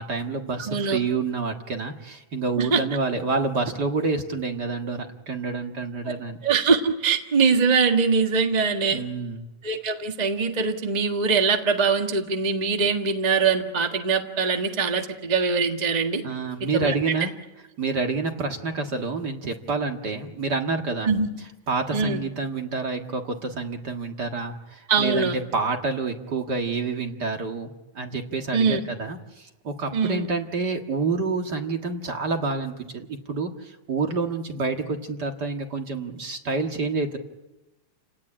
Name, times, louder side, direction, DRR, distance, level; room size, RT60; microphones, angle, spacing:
voice 1, 0.0-6.4 8.9-9.5 16.2-17.4 17.8-21.1 21.4-37.2, right 3 dB, 40° right, 4 dB, 1.9 m, -28 dB
voice 2, 0.6-1.0 2.6-2.8 6.4-9.0 9.6-16.2 16.6-16.9 21.1-21.3 21.9-22.2 24.9-25.3 28.5-28.8 29.9-30.3, right 5 dB, 25° right, 4 dB, 1.0 m, -22 dB
30.0 x 17.5 x 10.0 m, 1.1 s
omnidirectional pair, 3.3 m